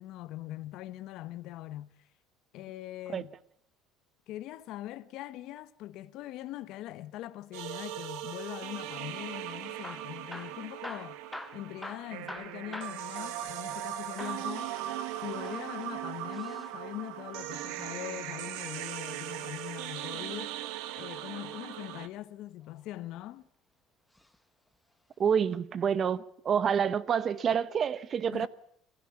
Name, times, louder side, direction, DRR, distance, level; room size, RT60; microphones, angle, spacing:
voice 1, 0.0-2.1 2.5-3.3 4.3-11.2 11.5-14.9 15.2-20.5 20.9-23.4 28.3-28.5, left 14 dB, 60° left, 1.1 m, -42 dB
sound 1, 7.5-22.1, right 12 dB, 75° right, 1.3 m, -39 dB
Hammer / Drill, 9.7-13.9 14.2-14.5 15.3-16.7 18.5-19.7 21.4-21.9 22.6-23.4 24.1-24.4 24.7-24.8 25.4-25.5, left 1 dB, 5° left, 1.2 m, -46 dB
voice 2, 25.2-28.5, right 7 dB, 35° right, 0.9 m, -28 dB
22.5 x 15.5 x 8.7 m
cardioid pair, 140°, 0 cm